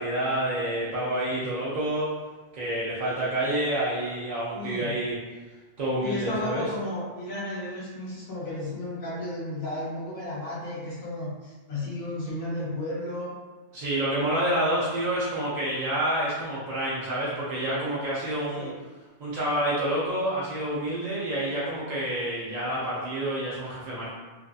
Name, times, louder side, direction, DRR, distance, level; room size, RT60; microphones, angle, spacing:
voice 1, 0.0-2.1 2.5-5.2 5.8-6.6 13.7-18.7 19.2-24.1, right 1 dB, 50° right, -8 dB, 0.5 m, -28 dB
voice 2, 4.5-4.9 6.0-13.3 18.5-18.7, left 1 dB, 55° left, -7 dB, 1.2 m, -33 dB
2.5 x 2.4 x 2.3 m, 1.2 s
omnidirectional pair, 1.2 m